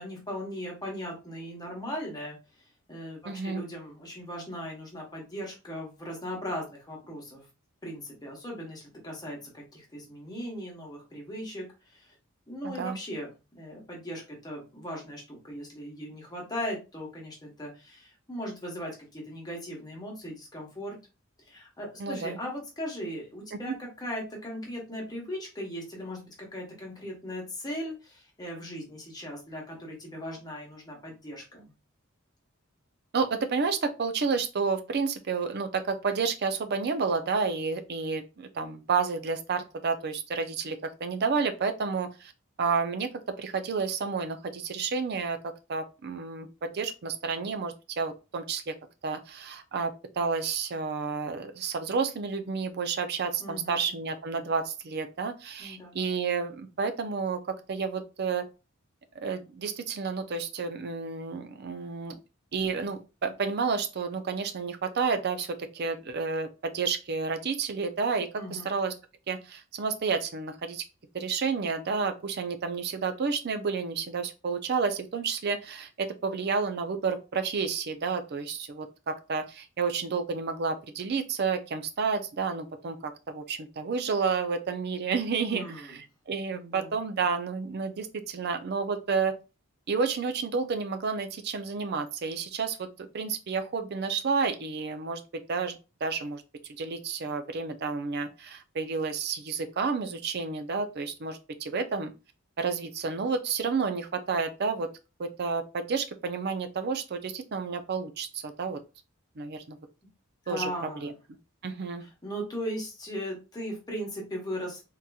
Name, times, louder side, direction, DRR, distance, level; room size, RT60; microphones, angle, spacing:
voice 1, 0.0-2.4 2.9-7.4 7.8-11.6 11.9-12.1 12.5-21.0 21.5-31.7 53.4-53.9 55.6-56.0 68.4-68.8 85.5-86.0 86.5-87.0 110.4-111.1 112.2-114.8, equal, 20° left, 1.2 m, -38 dB
voice 2, 3.3-3.6 12.6-13.0 22.0-22.4 23.5-23.7 33.1-42.3 42.6-43.1 43.4-48.7 49.0-58.5 59.2-62.2 62.5-68.9 69.3-70.8 71.1-89.4 89.9-96.4 96.8-102.1 102.6-104.9 105.2-108.8 109.4-109.8 110.5-110.7 111.0-111.1 111.6-112.1, right 5 dB, 50° right, 0.5 m, -30 dB
3.7 x 2.8 x 2.3 m
head